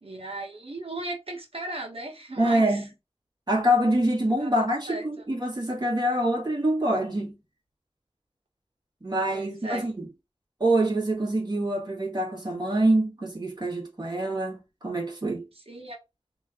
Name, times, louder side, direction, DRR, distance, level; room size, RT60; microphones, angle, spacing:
voice 1, 0.0-2.9 4.4-4.5 4.9-5.3 9.3-9.9 15.5-16.0, right 1 dB, 70° right, 1.5 m, -37 dB
voice 2, 2.4-2.9 3.5-7.3 9.0-10.1 10.6-15.4, right 1 dB, 45° right, 2.0 m, -25 dB
3.2 x 3.1 x 3.8 m
wide cardioid pair, 55°, 10 cm